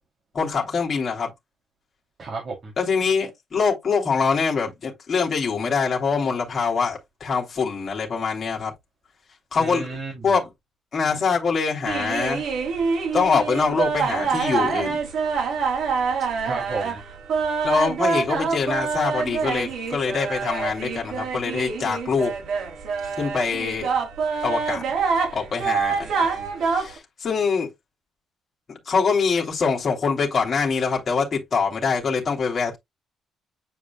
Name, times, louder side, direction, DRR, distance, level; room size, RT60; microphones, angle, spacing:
voice 1, 0.3-1.3 2.8-8.7 9.5-9.9 10.2-10.5 10.9-12.5 13.1-15.0 17.6-22.3 23.0-23.9 24.4-24.8 25.3-26.4 26.6-27.7 28.9-32.8, left 5 dB, 30° left, 3.0 m, -24 dB
voice 2, 2.2-2.7 9.6-10.3 16.4-17.0 26.0-26.5, right 3 dB, 35° right, 3.1 m, -33 dB
sound 1, 11.9-27.0, right 5 dB, 55° right, 3.0 m, -26 dB
9.0 x 4.9 x 2.3 m
cardioid pair, 165°, 0 cm